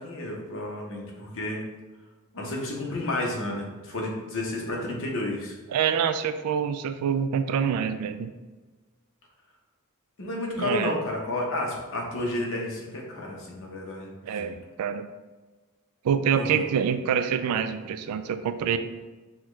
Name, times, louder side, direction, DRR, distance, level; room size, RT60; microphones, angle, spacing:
voice 1, 0.0-1.6 2.3-5.5 10.2-14.5 16.3-16.6, left 1 dB, 65° left, -1 dB, 1.0 m, -31 dB
voice 2, 5.7-8.3 10.6-10.9 14.2-15.1 16.0-18.8, right 7 dB, 85° right, 10 dB, 0.3 m, -26 dB
5.8 x 2.3 x 3.2 m, 1.3 s
head